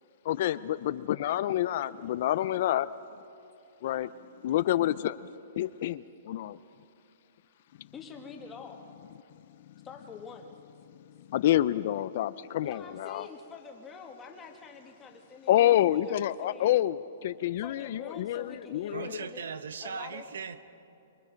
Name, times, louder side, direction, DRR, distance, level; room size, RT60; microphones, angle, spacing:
voice 1, 0.2-2.9 3.8-4.1 4.4-5.3 5.6-6.6 11.3-13.3 15.5-19.2, left 13 dB, 40° left, 16 dB, 0.4 m, -28 dB
voice 2, 7.9-8.9 9.8-10.5 12.6-16.7 17.6-19.4 19.8-20.3, left 5 dB, 10° left, 2 dB, 1.5 m, -46 dB
voice 3, 18.9-20.7, right 6 dB, 80° right, 12 dB, 1.1 m, -38 dB
24.5 x 24.0 x 5.2 m, 2.7 s
hypercardioid pair, 170°, 0 cm